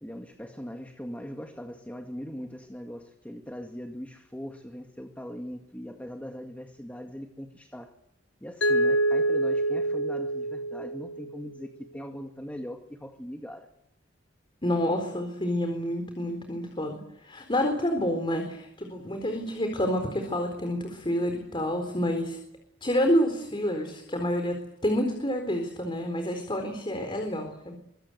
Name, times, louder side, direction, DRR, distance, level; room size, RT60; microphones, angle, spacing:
voice 1, 0.0-7.9 8.4-13.7, equal, 10° left, 4 dB, 2.0 m, -40 dB
Mallet percussion, 8.6-11.5, right 1 dB, 80° left, 1.4 m, -26 dB
voice 2, 14.6-22.4 22.8-27.8, equal, 25° left, 5 dB, 4.1 m, -28 dB
25.0 x 23.5 x 8.1 m, 0.79 s
head